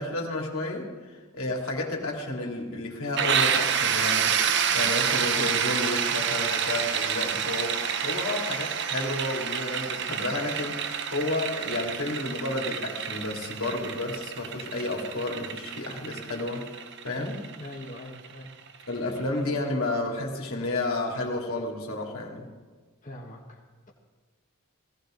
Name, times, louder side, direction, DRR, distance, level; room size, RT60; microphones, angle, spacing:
voice 1, 0.0-16.6 17.0-17.4 18.9-22.5, left 2 dB, 75° left, 0 dB, 3.1 m, -31 dB
sound 1, 3.2-18.8, right 7 dB, 55° right, 0.8 m, -28 dB
voice 2, 17.2-18.5 23.0-23.9, left 1 dB, 35° left, -2 dB, 1.4 m, -43 dB
17.5 x 17.0 x 3.9 m, 1.4 s
head